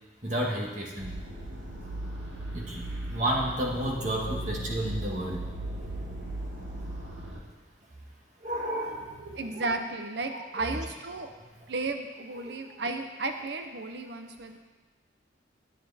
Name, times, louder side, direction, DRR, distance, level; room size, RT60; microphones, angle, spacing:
voice 1, 0.2-1.1 2.5-5.4 8.4-9.6 10.3-10.7 12.4-12.5, right 1 dB, 40° right, -2 dB, 1.9 m, -32 dB
sound 1, 1.0-7.4, right 1 dB, 85° right, 2.0 m, -37 dB
voice 2, 9.4-11.3 11.7-14.6, right 3 dB, 65° right, 6 dB, 0.7 m, -34 dB
10.0 x 9.9 x 4.2 m, 1.3 s
head